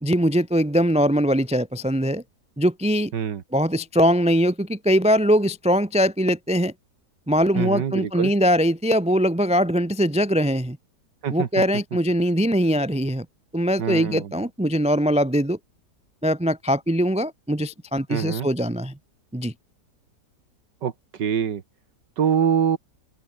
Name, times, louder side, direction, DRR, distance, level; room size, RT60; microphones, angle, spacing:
voice 1, 0.0-2.2 2.6-3.1 3.5-6.7 7.3-10.8 11.3-13.3 13.5-15.6 16.2-18.9 19.3-19.5, equal, 5° right, 0.6 m, -21 dB
voice 2, 7.6-8.3 11.2-11.5 13.8-14.3 18.1-18.5 20.8-21.6 22.2-22.8, right 8 dB, 85° right, 2.2 m, -24 dB
open air
omnidirectional pair, 1.8 m